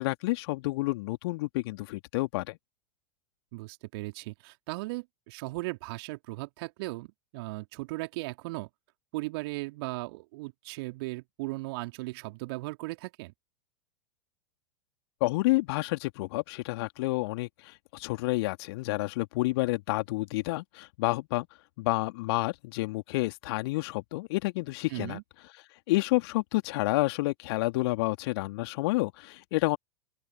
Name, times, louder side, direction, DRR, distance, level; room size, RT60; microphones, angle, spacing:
voice 1, 0.0-2.6 15.2-21.5 21.8-25.2 25.9-29.8, left 21 dB, 50° left, 2.6 m, -29 dB
voice 2, 3.5-8.7 9.1-13.3 24.9-25.2, right 23 dB, 50° right, 3.0 m, -37 dB
open air
figure-of-eight pair, 95°, 16 cm